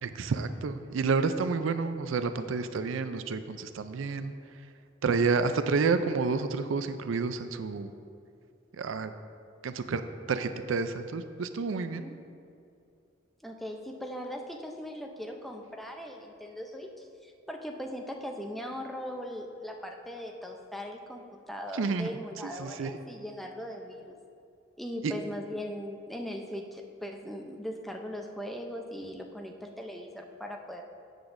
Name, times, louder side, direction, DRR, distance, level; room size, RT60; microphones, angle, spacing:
voice 1, 0.0-4.3 5.0-7.9 8.8-9.1 9.6-10.0 10.3-12.0 21.7-22.1 22.4-22.9 25.0-25.1, right 4 dB, 85° right, 10 dB, 0.5 m, -29 dB
voice 2, 11.7-12.2 13.4-24.1 24.8-30.8, equal, ahead, 2 dB, 0.5 m, -39 dB
13.0 x 8.1 x 2.6 m, 2.5 s
head